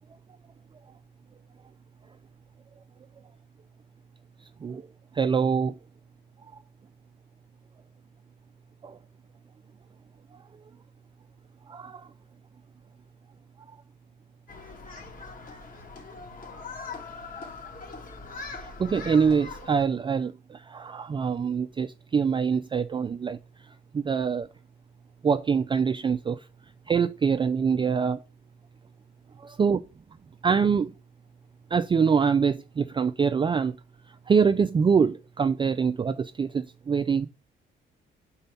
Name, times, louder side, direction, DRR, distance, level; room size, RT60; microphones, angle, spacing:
voice 1, 5.2-5.7 8.8-9.0 11.7-12.1 18.8-23.4 23.9-24.5 25.2-26.4 26.9-28.2 29.6-29.8 30.4-30.9 31.7-33.7 34.3-37.3, right 6 dB, 25° right, 0.3 m, -24 dB
Human group actions, 14.5-19.9, left 4 dB, 45° left, 2.1 m, -41 dB
5.4 x 4.4 x 5.5 m
cardioid pair, 90°, 20 cm